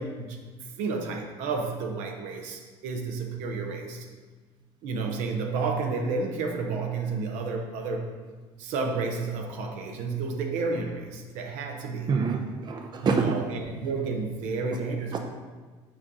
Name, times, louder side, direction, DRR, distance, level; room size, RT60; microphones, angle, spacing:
voice 1, 0.0-4.1 4.8-8.1 8.6-12.1 13.0-15.2, right 4 dB, 80° right, 3 dB, 0.9 m, -31 dB
voice 2, 12.1-13.4 15.1-15.2, right 5 dB, 35° right, 4 dB, 0.6 m, -26 dB
6.4 x 4.7 x 3.9 m, 1.4 s
supercardioid pair, 95°, 12 cm